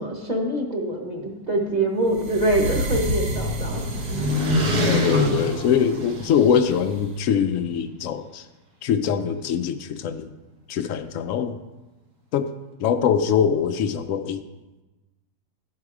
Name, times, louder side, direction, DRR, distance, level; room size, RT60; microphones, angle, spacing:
voice 1, 0.0-3.8, right 1 dB, 30° right, 0 dB, 1.1 m, -24 dB
sound 1, 1.9-6.7, left 1 dB, 80° right, 1.8 m, -26 dB
sound 2, 2.1-7.1, equal, 55° right, 1.1 m, -31 dB
voice 2, 4.8-8.4 8.8-10.3 10.7-11.6 12.3-12.5 12.8-14.4, left 7 dB, 70° left, 9 dB, 0.8 m, -23 dB
12.0 x 4.8 x 4.8 m, 1.1 s
omnidirectional pair, 1.7 m